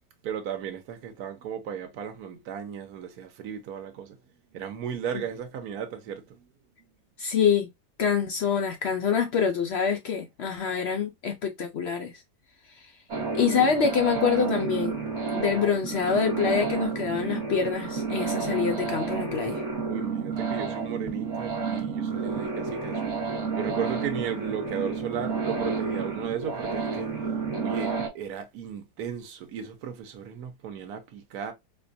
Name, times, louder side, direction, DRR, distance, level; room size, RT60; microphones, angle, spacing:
voice 1, 0.2-4.2 4.5-6.5 19.9-23.2 23.6-27.1 27.6-31.5, right 8 dB, 70° right, 1.3 m, -35 dB
voice 2, 7.2-7.7 8.0-12.2 12.7-12.9 13.3-15.0 15.3-19.6, left 6 dB, 75° left, 0.6 m, -26 dB
sound 1, 13.1-28.1, right 4 dB, 45° right, 1.4 m, -30 dB
4.4 x 2.3 x 2.6 m
omnidirectional pair, 1.7 m